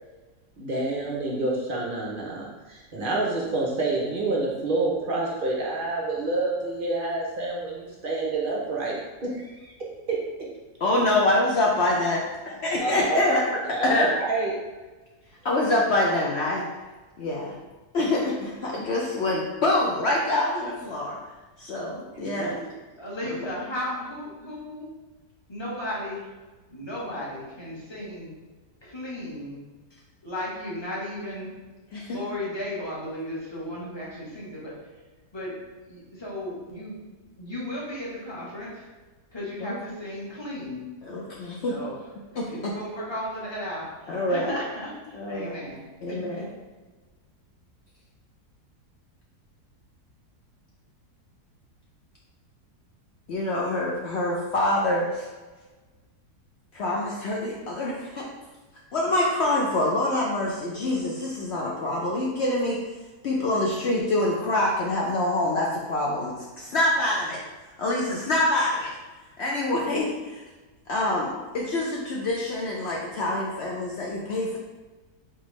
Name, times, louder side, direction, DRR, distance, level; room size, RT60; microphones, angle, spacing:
voice 1, 0.6-9.7 10.1-10.2 12.8-13.4 13.7-14.6 22.1-22.7, right 2 dB, 55° right, -3 dB, 0.6 m, -28 dB
voice 2, 10.8-12.2 12.5-13.4 13.8-14.1 15.4-16.6 17.2-17.5 17.9-21.2 21.6-22.5 31.9-32.2 39.6-39.8 41.1-41.8 44.1-44.5 45.1-45.5 46.0-46.4 53.3-55.3 56.7-58.3 58.9-62.8 63.2-67.4 67.8-68.9 69.4-70.4 70.9-74.6, left 1 dB, 65° left, -3 dB, 0.6 m, -25 dB
voice 3, 22.9-24.9 25.5-26.2 26.7-28.3 28.8-29.6 30.2-31.5 32.1-34.7 35.3-35.5 35.9-37.0 37.4-38.9 39.3-40.8 41.7-41.9 42.5-45.8 46.1-46.4, left 1 dB, 20° left, -6 dB, 1.0 m, -35 dB
4.0 x 3.4 x 3.1 m, 1.2 s
omnidirectional pair, 1.7 m